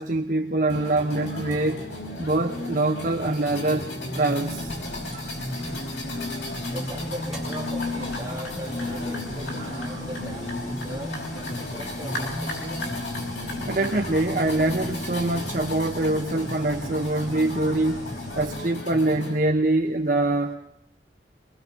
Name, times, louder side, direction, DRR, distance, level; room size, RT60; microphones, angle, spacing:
voice 1, 0.0-1.8 2.2-5.3 9.7-10.0 13.7-20.5, right 2 dB, 50° right, 3 dB, 1.1 m, -25 dB
sound 1, 0.7-19.4, left 1 dB, 85° left, 5.5 m, -33 dB
sound 2, 4.4-18.6, equal, ahead, 3.8 m, -43 dB
voice 2, 6.7-12.8, equal, 15° right, -2 dB, 4.1 m, -40 dB
23.5 x 20.5 x 6.0 m, 0.76 s
head